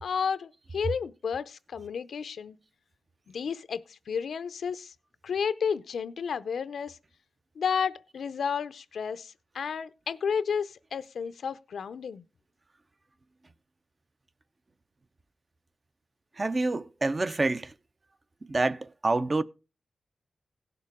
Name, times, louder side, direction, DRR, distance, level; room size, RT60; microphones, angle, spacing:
voice 1, 0.0-2.6 3.3-4.9 5.2-7.0 7.6-12.2, left 6 dB, 90° left, 0.5 m, -32 dB
voice 2, 16.4-17.7 18.4-19.4, right 2 dB, 30° right, 0.5 m, -27 dB
17.0 x 6.7 x 3.6 m
wide cardioid pair, 120°, 0 cm